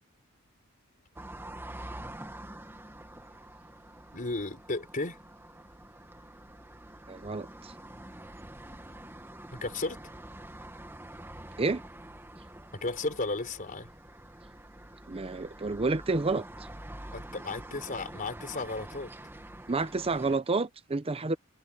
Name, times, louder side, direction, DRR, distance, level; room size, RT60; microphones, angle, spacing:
sound 1, 1.2-20.4, right 1 dB, 10° right, 1.6 m, -46 dB
voice 1, 4.1-5.2 9.5-10.0 12.8-13.9 17.1-19.1, left 3 dB, 40° left, 4.0 m, -34 dB
voice 2, 7.1-7.7 11.6-11.8 15.1-16.4 19.7-21.4, right 3 dB, 25° right, 0.7 m, -29 dB
head